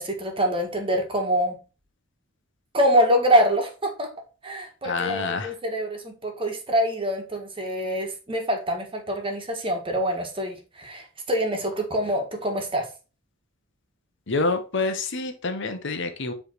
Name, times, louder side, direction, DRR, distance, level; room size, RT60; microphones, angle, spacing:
voice 1, 0.0-1.6 2.7-4.1 4.4-12.9, equal, 25° right, 3 dB, 1.4 m, -25 dB
voice 2, 4.8-5.5 14.3-16.3, left 3 dB, 60° left, 7 dB, 0.9 m, -27 dB
7.5 x 3.3 x 4.4 m, 0.33 s
head